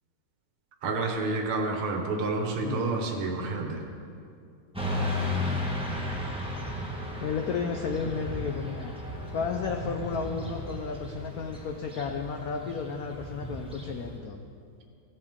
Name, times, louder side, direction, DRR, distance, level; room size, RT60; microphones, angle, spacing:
voice 1, 0.8-3.8, right 3 dB, 85° right, 2 dB, 2.0 m, -29 dB
voice 2, 2.6-3.0 7.2-8.9 9.3-14.4, left 5 dB, 80° left, 4 dB, 0.8 m, -33 dB
Motorcycle / Traffic noise roadway noise, 4.7-14.1, left 1 dB, 5° right, 0.8 m, -34 dB
16.0 x 8.2 x 3.6 m, 2.3 s
omnidirectional pair, 2.3 m